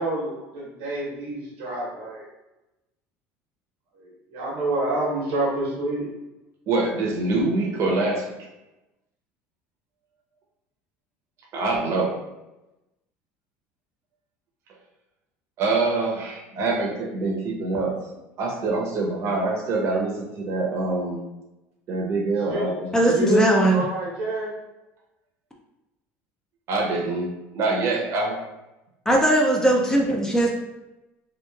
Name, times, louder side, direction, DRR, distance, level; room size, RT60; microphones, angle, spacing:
voice 1, 0.0-2.3 4.0-6.1 22.5-22.7 23.0-24.5, right 1 dB, 85° right, -4 dB, 1.1 m, -27 dB
voice 2, 6.7-8.3 11.5-12.1 15.6-18.0 18.4-21.2 21.9-22.9 26.7-28.4, right 3 dB, 50° right, -1 dB, 0.8 m, -25 dB
voice 3, 22.9-23.8 29.1-30.5, right 1 dB, 10° left, -1 dB, 0.4 m, -19 dB
3.0 x 2.4 x 2.3 m, 0.98 s
supercardioid pair, 115°, 6 cm